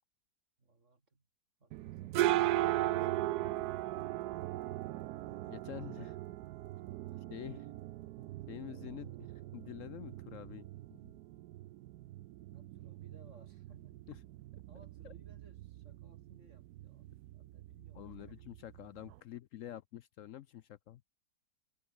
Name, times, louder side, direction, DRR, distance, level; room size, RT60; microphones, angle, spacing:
voice 1, 0.6-1.3 1.6-3.5 5.5-6.4 7.0-7.3 12.5-14.0 14.7-18.8, right 3 dB, 45° right, 3.5 m, -62 dB
sound 1, 1.7-19.2, right 15 dB, 75° right, 1.1 m, -38 dB
voice 2, 5.5-6.1 7.3-7.7 8.5-9.2 9.5-11.2 14.1-14.2 17.9-21.0, left 12 dB, 65° left, 0.8 m, -47 dB
omnidirectional pair, 1.8 m